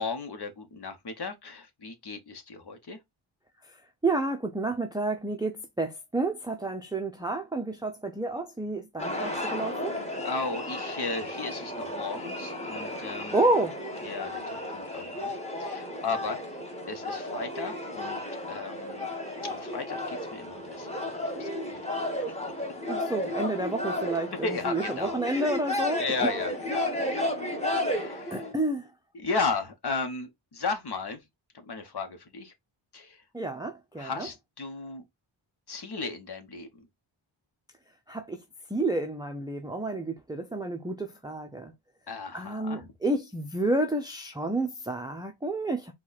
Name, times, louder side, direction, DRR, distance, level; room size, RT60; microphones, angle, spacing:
voice 1, 0.0-3.0 10.2-13.4 14.0-16.6 16.9-18.2 18.5-19.1 19.5-21.8 24.4-25.5 26.0-27.2 27.7-28.5 29.1-31.2 31.5-32.5 32.9-33.2 34.0-35.0 35.7-36.9 42.1-42.9, left 4 dB, 50° left, 1.2 m, -35 dB
voice 2, 4.0-9.9 13.3-13.8 22.9-26.3 28.3-28.9 33.3-34.3 38.1-38.4 38.7-41.7 42.3-45.9, right 2 dB, 10° right, 0.6 m, -30 dB
sound 1, 9.0-28.5, left 1 dB, 15° left, 1.2 m, -33 dB
4.6 x 2.4 x 4.0 m
wide cardioid pair, 80°, 49 cm